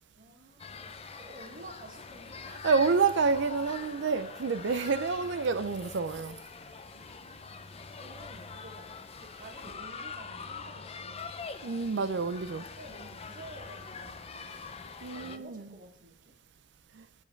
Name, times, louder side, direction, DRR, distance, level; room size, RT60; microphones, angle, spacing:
voice 1, 0.1-2.8 6.9-7.7 7.9-11.4 12.5-16.4, right 1 dB, 45° right, 1.8 m, -52 dB
sound 1, 0.6-15.4, left 4 dB, 30° left, 0.5 m, -44 dB
voice 2, 2.6-6.4 11.6-12.7 15.0-15.7 16.9-17.1, right 4 dB, 65° right, 0.5 m, -28 dB
7.7 x 7.2 x 4.5 m
head